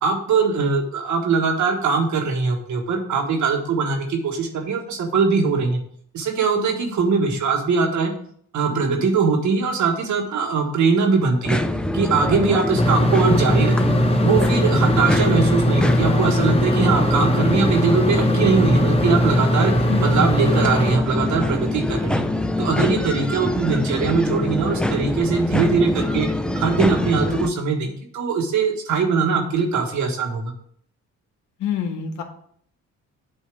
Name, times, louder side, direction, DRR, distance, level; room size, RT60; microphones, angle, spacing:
voice 1, 0.0-5.8 6.1-8.1 8.5-11.6 11.9-13.8 14.2-19.7 20.0-22.2 22.6-26.3 26.5-30.5, right 4 dB, 70° right, 3 dB, 1.5 m, -21 dB
sound 1, 11.4-27.5, left 1 dB, 5° left, 0.4 m, -24 dB
sound 2, 12.8-21.0, equal, 20° left, 0.8 m, -20 dB
voice 2, 19.9-20.3 31.6-32.2, left 8 dB, 75° left, 5 dB, 1.3 m, -28 dB
7.9 x 2.8 x 6.1 m, 0.62 s
cardioid pair, 90°, 30 cm